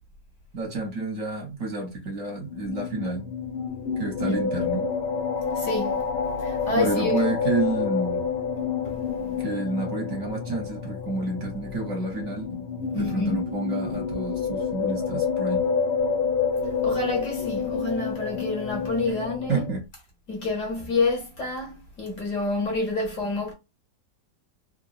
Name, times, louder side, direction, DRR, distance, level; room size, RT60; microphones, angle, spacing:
voice 1, 0.5-3.2 4.0-4.8 6.7-8.2 9.4-12.6 12.9-15.6 19.5-19.8, right 3 dB, 55° right, 1.2 m, -29 dB
sound 1, 2.4-19.7, left 6 dB, 75° left, 1.5 m, -28 dB
voice 2, 5.5-6.1 6.4-7.3 8.8-9.0 12.9-13.4 16.8-19.6 20.3-23.5, left 3 dB, 55° left, 1.1 m, -28 dB
3.6 x 2.0 x 2.3 m
omnidirectional pair, 1.8 m